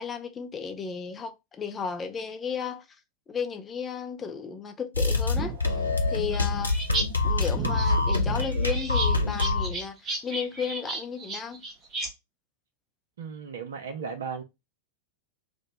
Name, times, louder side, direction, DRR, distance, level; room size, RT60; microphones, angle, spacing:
voice 1, 0.0-2.8 3.3-5.6 6.1-6.8 7.2-11.6, left 6 dB, 20° left, 0.6 m, -34 dB
sound 1, 4.9-9.8, left 3 dB, 80° left, 0.5 m, -25 dB
sound 2, 5.3-7.0 7.3-12.1, right 3 dB, 25° right, 0.9 m, -34 dB
voice 2, 13.2-14.4, right 6 dB, 60° right, 0.6 m, -35 dB
2.9 x 2.1 x 4.1 m
figure-of-eight pair, 90°, 0 cm